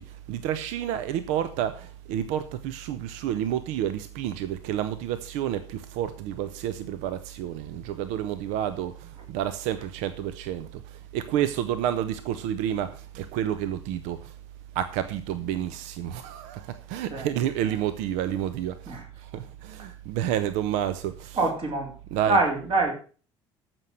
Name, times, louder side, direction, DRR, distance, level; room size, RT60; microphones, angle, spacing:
voice 1, 0.0-14.3 14.7-19.0 19.2-21.5 22.1-22.4, right 10 dB, 55° right, 0.8 m, -30 dB
voice 2, 21.3-21.9 22.3-22.9, right 3 dB, 40° right, 3.6 m, -25 dB
14.0 x 6.2 x 6.4 m
figure-of-eight pair, 60°, 14 cm